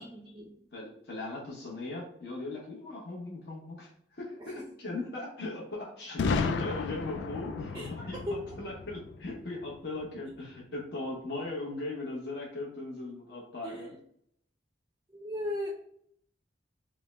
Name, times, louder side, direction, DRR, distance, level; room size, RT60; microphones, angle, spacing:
voice 1, 0.0-0.6 7.7-7.9 8.3-8.6 13.6-14.0 15.1-15.7, left 1 dB, 20° right, 0 dB, 0.4 m, -37 dB
voice 2, 0.7-13.9, left 2 dB, 65° left, -3 dB, 0.9 m, -38 dB
Boom, 6.2-10.0, left 4 dB, 85° left, 0.3 m, -34 dB
3.4 x 2.1 x 3.2 m, 0.69 s
head